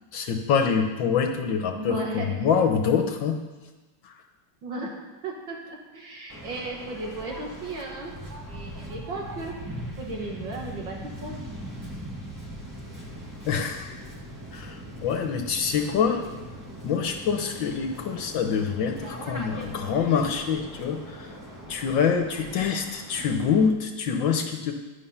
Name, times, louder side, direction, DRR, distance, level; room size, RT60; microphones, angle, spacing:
voice 1, 0.1-3.4 4.0-4.1 13.5-14.0 14.5-16.2 16.8-21.3 21.7-24.7, left 6 dB, 70° left, 4 dB, 1.6 m, -25 dB
voice 2, 1.7-2.3 4.6-4.9 5.2-8.1 8.4-9.6 10.0-11.4, right 2 dB, 65° right, -1 dB, 2.3 m, -35 dB
Waves surf, 6.3-23.7, equal, 10° right, 1.5 m, -40 dB
11.0 x 11.0 x 5.6 m, 1.2 s
omnidirectional pair, 2.2 m